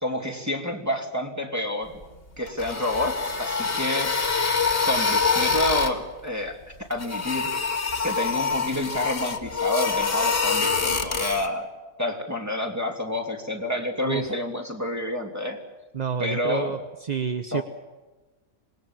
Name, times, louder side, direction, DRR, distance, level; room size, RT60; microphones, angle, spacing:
voice 1, 0.0-2.0 2.4-4.1 4.8-7.5 8.0-11.7 12.0-15.6 16.2-16.7 17.5-17.6, left 1 dB, 10° right, 3 dB, 3.0 m, -29 dB
sound 1, 2.5-6.0 6.9-11.5, left 5 dB, 40° left, 2.2 m, -25 dB
voice 2, 15.9-17.6, right 7 dB, 35° right, 9 dB, 0.8 m, -29 dB
26.5 x 20.5 x 7.5 m, 1.2 s
omnidirectional pair, 1.5 m